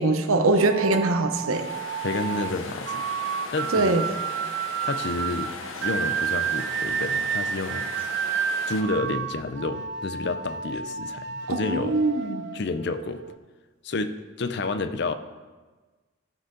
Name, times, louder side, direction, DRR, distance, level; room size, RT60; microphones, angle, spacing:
voice 1, 0.0-1.6 3.7-4.0 11.5-12.4, right 2 dB, 90° right, 6 dB, 0.9 m, -22 dB
sound 1, 0.6-13.4, right 8 dB, 55° right, 0.3 m, -31 dB
sound 2, 1.5-8.8, left 3 dB, 75° left, 1.0 m, -38 dB
voice 2, 2.0-3.1 3.5-3.9 4.8-5.5 5.8-7.9 8.6-12.0 12.5-13.2 13.8-15.1, left 3 dB, 55° left, 10 dB, 0.5 m, -30 dB
13.0 x 5.8 x 3.8 m, 1.3 s
head